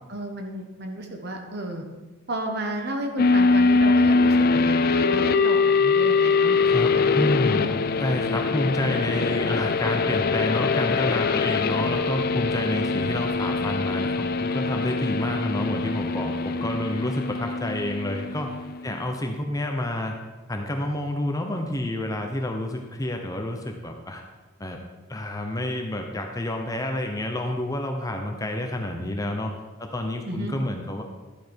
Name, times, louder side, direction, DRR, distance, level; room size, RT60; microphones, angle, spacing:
voice 1, 0.1-1.8 2.3-7.7 30.3-30.5, right 1 dB, 45° right, 4 dB, 1.3 m, -33 dB
sound 1, 3.2-18.9, left 4 dB, 40° left, 0.3 m, -23 dB
voice 2, 6.6-7.7 8.0-18.6 18.8-20.2 20.5-24.2 24.6-24.8 25.1-29.5 29.8-31.0, left 1 dB, 15° left, 3 dB, 0.8 m, -29 dB
11.5 x 8.1 x 4.5 m, 1.2 s
head